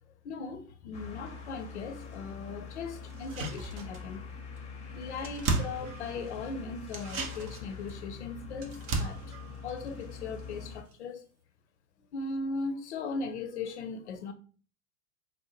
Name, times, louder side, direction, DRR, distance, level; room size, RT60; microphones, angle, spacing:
voice 1, 0.2-4.3 4.9-9.3 9.6-11.2 12.1-14.3, left 4 dB, 55° left, 0.7 m, -38 dB
sound 1, 0.9-10.8, left 5 dB, 15° left, 0.8 m, -44 dB
sound 2, 3.1-4.3 4.6-4.7 4.9-6.4 6.9-10.6 10.9-11.0, right 3 dB, 30° right, 0.7 m, -36 dB
4.5 x 2.2 x 2.9 m
figure-of-eight pair, 95°, 42 cm